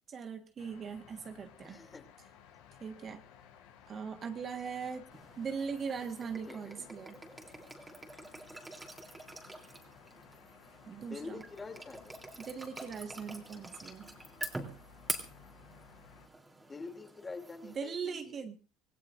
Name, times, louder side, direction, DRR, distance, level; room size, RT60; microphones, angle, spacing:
voice 1, 0.1-1.8 2.8-3.2 3.9-5.1 5.4-7.2 10.9-11.4 12.4-14.1 17.6-18.6, right 6 dB, 35° right, 7 dB, 1.4 m, -40 dB
sound 1, 0.6-16.3, left 8 dB, 85° left, 4.8 m, -58 dB
voice 2, 1.6-2.1 6.5-6.9 11.1-12.2 16.7-18.4, left 4 dB, 20° left, 6 dB, 2.8 m, -46 dB
sound 2, 5.1-17.8, right 2 dB, 10° right, 3.2 m, -46 dB
26.0 x 16.5 x 2.6 m, 0.32 s
supercardioid pair, 105°, 0 cm